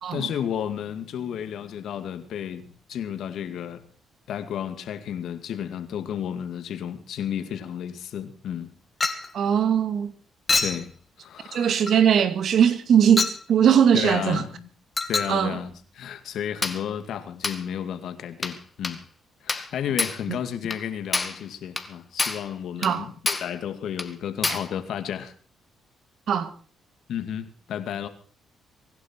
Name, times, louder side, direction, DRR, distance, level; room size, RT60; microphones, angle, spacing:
voice 1, 0.1-3.9 4.3-8.7 10.6-10.9 11.2-11.7 13.9-14.7 15.1-19.1 19.4-25.3 27.1-28.1, left 9 dB, 75° left, 2.2 m, -32 dB
Chink clink, 9.0-9.3 10.5-10.9 11.9-12.0 13.2-13.4 15.0-15.4 16.6-16.8 17.4-17.6 18.4-18.6 18.8-19.0 19.5-19.7 20.0-20.2 20.7-20.8 21.1-21.4 21.8-21.9 22.2-22.5 22.8-23.0 23.3-23.5 24.0-24.1 24.4-24.7, left 3 dB, 25° left, 2.0 m, -27 dB
voice 2, 9.3-10.1 11.5-14.4 15.3-15.6 20.3-20.4 22.8-23.1 26.3-26.5, right 8 dB, 65° right, 2.1 m, -20 dB
24.5 x 11.5 x 4.5 m
cardioid pair, 90°, 0 cm